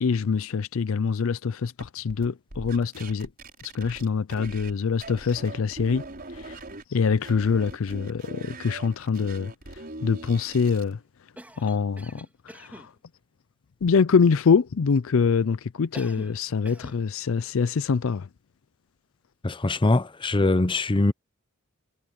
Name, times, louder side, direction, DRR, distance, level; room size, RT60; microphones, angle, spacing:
voice 1, 0.0-3.3 3.6-6.0 6.3-6.6 6.9-11.0 11.6-12.9 13.8-18.3, left 5 dB, 70° left, 0.5 m, -25 dB
sound 1, 1.8-4.7 5.0-6.8 7.2-10.9, right 2 dB, 45° right, 5.7 m, -41 dB
Cough, 11.4-12.9 15.9-16.4 16.7-17.0, right 1 dB, 10° right, 3.6 m, -45 dB
voice 2, 19.4-21.1, left 2 dB, 25° left, 0.6 m, -22 dB
head